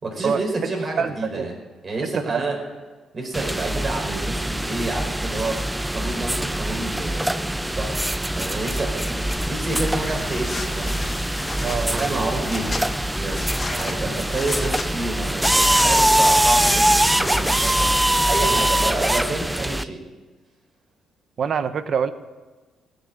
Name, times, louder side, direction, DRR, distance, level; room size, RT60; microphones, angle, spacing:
voice 1, 0.0-1.5 1.8-2.6 3.1-5.6 5.9-8.0 8.4-11.0 11.9-12.8 13.2-13.5 13.7-17.9 18.3-20.0, right 2 dB, 35° right, 0 dB, 5.0 m, -29 dB
voice 2, 1.0-1.5 2.1-2.4 11.6-12.3 13.7-13.8 18.5-18.6 21.4-22.1, right 6 dB, 55° right, 12 dB, 0.9 m, -25 dB
sound 1, 3.3-19.8, right 1 dB, 5° right, 0.5 m, -23 dB
sound 2, 9.4-18.0, left 3 dB, 30° left, 1.4 m, -34 dB
17.0 x 6.8 x 8.9 m, 1.3 s
cardioid pair, 90°, 0 cm